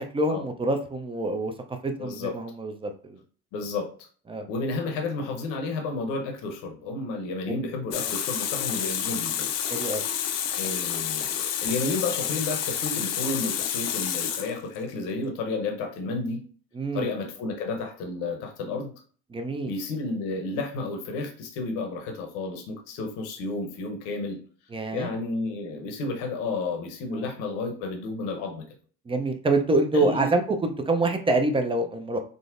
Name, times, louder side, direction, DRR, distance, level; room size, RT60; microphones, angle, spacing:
voice 1, 0.0-3.2 4.3-4.5 8.0-8.1 9.7-10.0 16.7-17.1 19.3-19.7 24.7-25.1 27.1-27.3 29.1-32.2, right 2 dB, 15° right, 5 dB, 0.5 m, -26 dB
voice 2, 2.0-2.4 3.5-3.9 4.5-9.5 10.5-16.5 16.9-18.9 19.6-24.4 24.9-28.6 29.9-30.3, left 3 dB, 70° left, 3 dB, 0.9 m, -31 dB
Water tap faucet, 7.9-14.9, left 9 dB, 50° left, 0.5 m, -29 dB
3.6 x 2.0 x 2.5 m, 0.43 s
hypercardioid pair, 75°, 34 cm